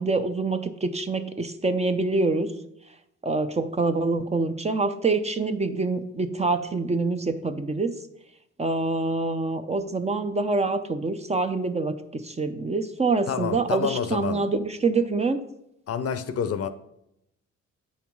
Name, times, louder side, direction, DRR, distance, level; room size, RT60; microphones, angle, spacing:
voice 1, 0.0-2.5 3.2-7.9 8.6-15.4, right 3 dB, 20° right, 0.6 m, -26 dB
voice 2, 13.3-14.5 15.9-16.7, left 7 dB, 50° left, 0.6 m, -28 dB
8.3 x 5.7 x 4.6 m
cardioid pair, 90°, 30 cm